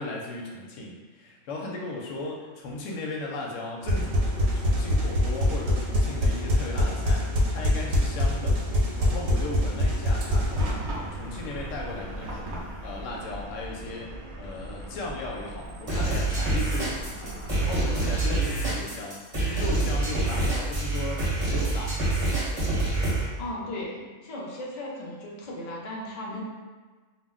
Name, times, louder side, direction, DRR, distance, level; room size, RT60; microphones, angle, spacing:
voice 1, 0.0-8.6 9.0-10.9 11.1-22.0, left 2 dB, 75° left, -1 dB, 0.9 m, -36 dB
sound 1, 3.8-10.7, left 1 dB, 85° right, 1.0 m, -24 dB
Chatter / Car passing by / Traffic noise roadway noise, 10.2-18.3, right 1 dB, 65° right, 0.5 m, -38 dB
sound 2, 15.9-23.3, right 2 dB, 35° right, 0.8 m, -26 dB
voice 2, 23.4-26.4, left 1 dB, 60° left, -3 dB, 0.4 m, -36 dB
2.4 x 2.1 x 3.6 m, 1.4 s
omnidirectional pair, 1.3 m